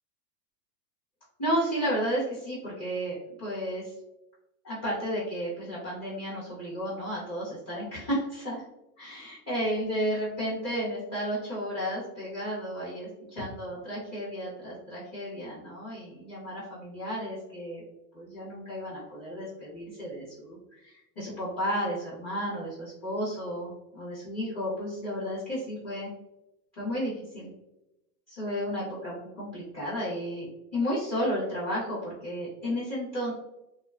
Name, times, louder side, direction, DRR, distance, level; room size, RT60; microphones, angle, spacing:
voice 1, 1.4-3.9 4.6-8.6 9.0-17.8 18.1-26.1 26.8-27.5 28.3-33.3, equal, 20° left, -10 dB, 0.5 m, -33 dB
2.6 x 2.1 x 2.3 m, 0.90 s
supercardioid pair, 155°, 49 cm